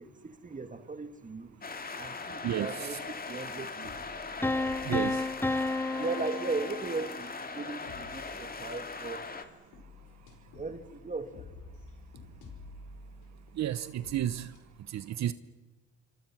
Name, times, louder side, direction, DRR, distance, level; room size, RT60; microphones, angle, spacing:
voice 1, 0.0-1.6 1.9-3.0 3.3-4.2 6.0-9.2 10.5-11.5, right 3 dB, 25° right, 9 dB, 1.8 m, -37 dB
sound 1, 1.6-9.4, left 4 dB, 30° left, 2.4 m, -40 dB
voice 2, 2.4-3.0 4.8-5.2 13.6-14.5 14.9-15.3, right 11 dB, 65° right, 14 dB, 0.9 m, -32 dB
sound 2, 3.8-14.6, left 3 dB, 80° left, 5.3 m, -52 dB
sound 3, 4.4-7.3, left 2 dB, 5° left, 0.7 m, -32 dB
27.5 x 25.5 x 6.1 m, 1.1 s
cardioid pair, 90°, 30 cm